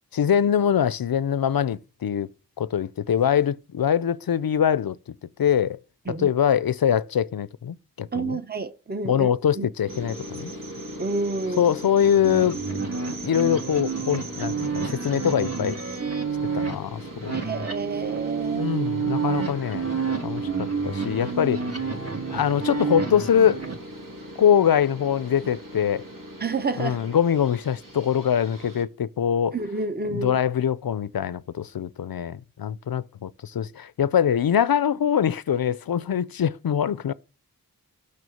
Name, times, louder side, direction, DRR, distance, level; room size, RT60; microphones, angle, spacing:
voice 1, 0.1-2.3 2.6-5.0 5.4-5.8 6.1-8.4 9.0-10.5 11.6-12.9 13.2-15.8 16.4-17.5 18.5-19.9 20.2-21.6 22.3-23.6 24.4-26.0 26.8-29.6 30.1-37.1, left 9 dB, 75° left, 0.5 m, -23 dB
voice 2, 8.1-9.7 11.0-11.7 17.3-18.7 25.4-25.5 26.4-27.0 29.5-30.4, right 3 dB, 25° right, 0.8 m, -29 dB
sound 1, 9.9-28.8, equal, 65° right, 2.2 m, -40 dB
sound 2, 12.0-23.8, right 5 dB, 40° right, 1.6 m, -29 dB
6.3 x 5.8 x 7.1 m
wide cardioid pair, 55°, 36 cm